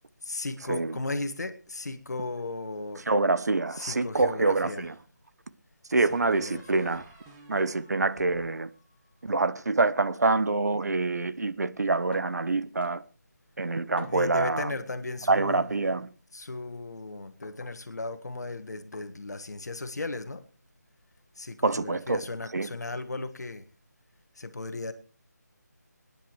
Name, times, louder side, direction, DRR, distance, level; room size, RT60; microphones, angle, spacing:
voice 1, 0.2-3.0 3.7-4.9 6.3-7.0 14.1-15.7 16.3-20.4 21.4-23.6 24.4-24.9, left 2 dB, 65° left, 1.7 m, -36 dB
voice 2, 3.1-4.9 5.9-7.0 7.5-8.7 9.2-13.0 13.6-14.7 15.3-16.1 21.6-22.2 22.5-22.7, right 3 dB, 65° right, 0.9 m, -26 dB
sound 1, 4.8-5.1 6.0-9.4, right 2 dB, 10° right, 1.3 m, -55 dB
sound 2, 12.1-12.5 12.8-12.9 14.0-14.4 15.5-15.7 17.4-17.8 18.9-19.1 20.3-20.5, left 4 dB, 40° left, 0.9 m, -46 dB
26.0 x 10.0 x 3.1 m
figure-of-eight pair, 165°, 10 cm